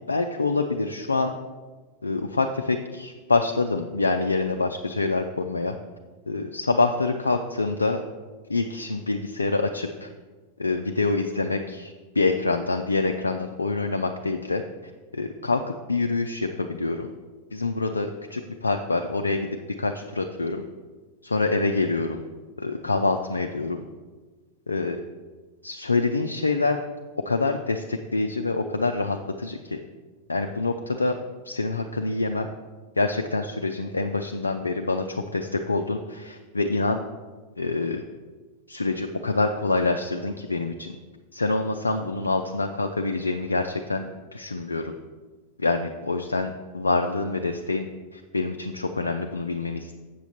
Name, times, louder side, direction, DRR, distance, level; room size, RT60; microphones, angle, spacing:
voice 1, 0.1-1.3 2.0-5.8 6.3-8.0 8.5-10.1 10.6-14.6 15.1-15.6 15.9-17.1 17.5-19.5 19.8-20.6 21.2-22.2 22.6-23.8 24.7-25.0 25.6-26.8 27.3-29.8 30.3-31.2 31.4-32.5 33.0-37.0 37.6-38.0 38.7-41.0 41.3-44.9 45.6-47.9 48.1-49.9, left 3 dB, 80° left, 4 dB, 0.4 m, -26 dB
7.5 x 7.0 x 4.1 m, 1.3 s
figure-of-eight pair, 90°, 0 cm